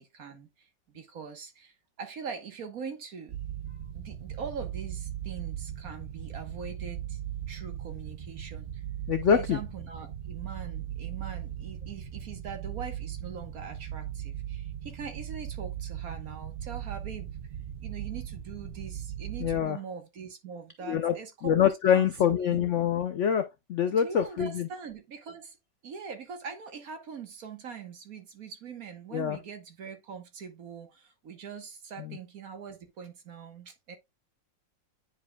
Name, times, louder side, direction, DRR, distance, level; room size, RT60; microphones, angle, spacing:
voice 1, 0.0-3.4 3.9-7.2 7.5-8.8 9.2-17.3 17.8-22.7 23.9-25.6 25.8-34.0, right 6 dB, 55° right, 1.5 m, -42 dB
sound 1, 3.3-19.6, right 10 dB, 80° right, 0.4 m, -38 dB
voice 2, 9.1-9.6 19.4-19.8 20.9-21.1 21.4-24.7 29.1-29.4, left 8 dB, 75° left, 0.6 m, -25 dB
9.4 x 4.9 x 2.3 m
omnidirectional pair, 2.0 m